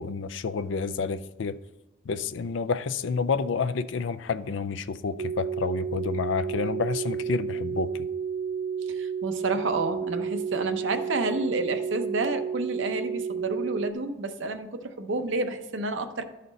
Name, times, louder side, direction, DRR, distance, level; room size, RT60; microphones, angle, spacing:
voice 1, 0.0-1.6 2.1-7.9, left 5 dB, 85° left, 0.4 m, -29 dB
sound 1, 5.2-13.9, right 6 dB, 75° right, 0.3 m, -31 dB
voice 2, 8.9-16.2, right 2 dB, 90° right, 0.7 m, -30 dB
12.0 x 4.2 x 3.9 m
head